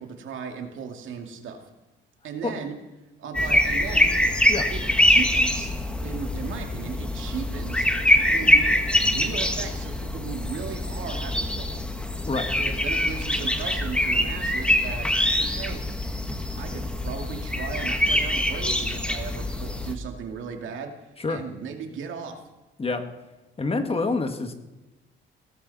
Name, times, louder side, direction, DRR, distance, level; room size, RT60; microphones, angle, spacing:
voice 1, 0.0-1.6 2.2-2.7 3.2-4.1 4.7-7.9 8.2-8.6 9.0-11.8 12.6-15.1 15.5-15.8 16.6-22.4, right 6 dB, 80° right, 3 dB, 2.4 m, -36 dB
sound 1, 3.3-19.9, left 1 dB, 5° left, 1.7 m, -24 dB
voice 2, 23.6-24.5, left 3 dB, 30° left, 7 dB, 1.8 m, -27 dB
18.0 x 14.5 x 4.2 m, 1.1 s
cardioid pair, 90°, 20 cm